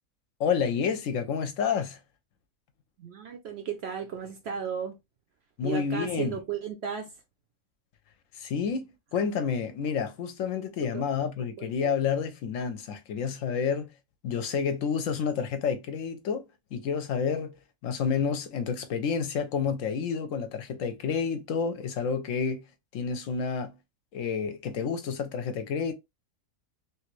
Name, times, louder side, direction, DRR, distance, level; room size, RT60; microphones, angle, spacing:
voice 1, 0.4-2.0 5.6-6.4 8.4-13.9 14.2-16.4 16.7-17.5 17.8-22.6 22.9-23.7 24.1-25.9, left 6 dB, 70° left, 0.9 m, -29 dB
voice 2, 3.0-5.0 5.6-7.2 10.6-11.0 11.6-11.9, right 7 dB, 65° right, 0.7 m, -35 dB
3.1 x 2.5 x 3.0 m
omnidirectional pair, 1.5 m